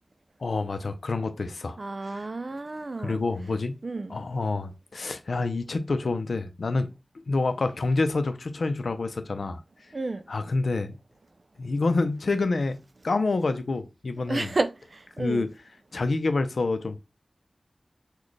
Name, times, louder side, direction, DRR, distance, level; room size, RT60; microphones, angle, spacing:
voice 1, 0.4-2.3 3.0-3.7 4.1-6.9 7.3-9.6 10.3-11.0 11.6-12.8 13.0-14.5 15.2-15.5 15.9-17.0, left 3 dB, 90° left, 0.5 m, -27 dB
voice 2, 1.8-3.2 3.8-4.2 9.9-10.3 14.3-15.5, right 2 dB, 50° right, 0.3 m, -31 dB
4.0 x 2.2 x 3.2 m
wide cardioid pair, 75°, 0 cm